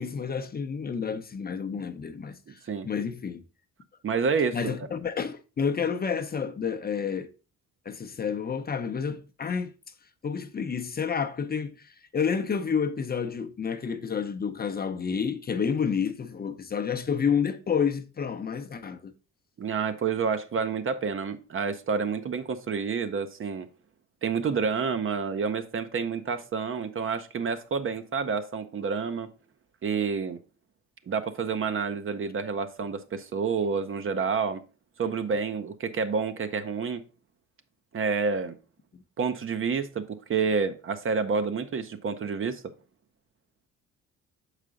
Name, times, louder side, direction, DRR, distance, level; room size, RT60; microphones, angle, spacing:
voice 1, 0.0-2.4 2.8-3.4 4.5-7.3 7.9-9.7 10.2-11.7 12.1-19.1, left 6 dB, 30° left, 0.6 m, -29 dB
voice 2, 2.5-2.9 4.0-4.9 19.6-23.7 24.2-29.3 29.8-30.4 31.1-34.6 35.0-37.0 37.9-38.6 39.2-42.6, right 5 dB, 45° right, 0.7 m, -29 dB
6.6 x 5.0 x 3.7 m
cardioid pair, 90°, 30 cm